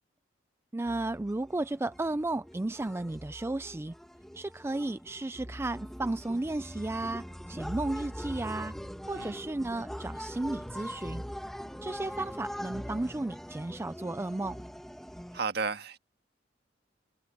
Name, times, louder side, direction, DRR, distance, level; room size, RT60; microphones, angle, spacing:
voice 1, 0.7-3.9 4.3-8.7 9.1-11.2 11.8-14.6, right 2 dB, 15° right, 0.3 m, -34 dB
sound 1, 0.9-15.4, equal, ahead, 1.9 m, -42 dB
voice 2, 15.3-16.0, right 4 dB, 60° right, 1.7 m, -33 dB
head